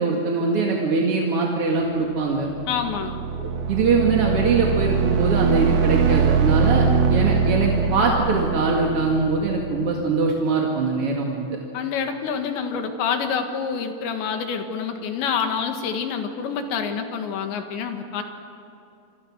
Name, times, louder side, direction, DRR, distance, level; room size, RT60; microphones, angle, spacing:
voice 1, 0.0-2.5 3.4-11.5, right 4 dB, 45° right, -1 dB, 2.2 m, -22 dB
sound 1, 2.3-10.1, right 5 dB, 65° right, 1.7 m, -22 dB
voice 2, 2.7-3.1 11.7-18.2, left 6 dB, 80° left, 5 dB, 3.9 m, -27 dB
28.5 x 25.0 x 6.2 m, 2.7 s
omnidirectional pair, 5.2 m